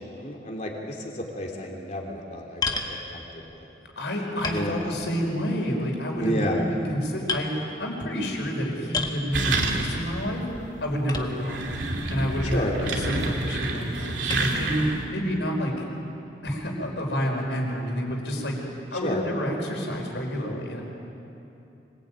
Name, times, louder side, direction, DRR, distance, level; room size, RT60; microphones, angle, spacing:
voice 1, 0.0-3.7 4.5-4.9 6.1-6.7 12.4-12.8 19.0-19.2, left 1 dB, 40° left, 0 dB, 3.4 m, -31 dB
sound 1, 2.6-3.0 3.8-3.9 4.4-5.3 5.6-6.0 6.6-6.9 7.3-7.5 8.9-9.3 11.1-11.6 12.3-12.4 14.3-14.6, left 4 dB, 20° left, 1.6 m, -31 dB
voice 2, 3.9-10.5 10.8-11.7 12.1-15.8 16.4-18.6 18.9-20.8, equal, 75° left, 1 dB, 5.0 m, -29 dB
sound 2, 9.3-10.2 10.5-10.6 11.3-15.1, right 2 dB, 85° right, 2.9 m, -28 dB
26.0 x 19.0 x 9.2 m, 2.8 s
head